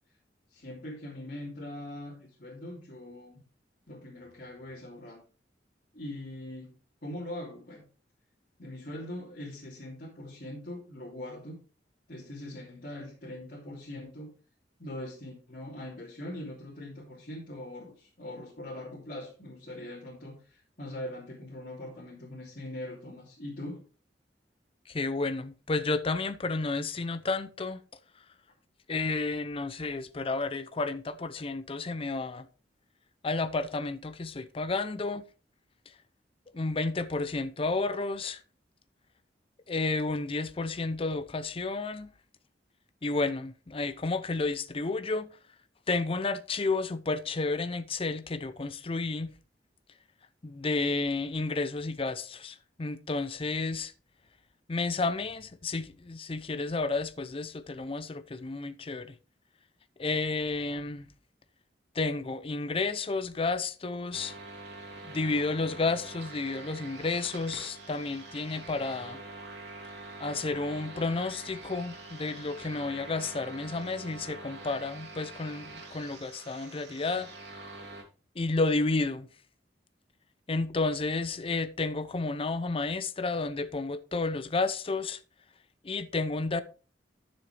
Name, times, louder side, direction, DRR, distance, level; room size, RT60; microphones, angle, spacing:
voice 1, 0.5-3.4 3.9-5.2 5.9-6.7 7.0-7.8 8.6-11.6 12.1-14.3 14.8-23.8, left 1 dB, 50° left, 2.9 m, -42 dB
voice 2, 24.9-27.8 28.9-32.5 33.2-35.2 36.5-38.4 39.7-42.1 43.0-45.3 45.9-49.3 50.4-53.9 54.7-59.1 60.0-61.1 61.9-64.3 65.0-69.2 70.2-77.3 78.4-79.3 80.5-85.2 85.8-86.6, left 3 dB, 35° left, 0.6 m, -31 dB
sound 1, 64.1-78.0, right 2 dB, 75° right, 3.1 m, -45 dB
11.5 x 7.0 x 3.3 m
head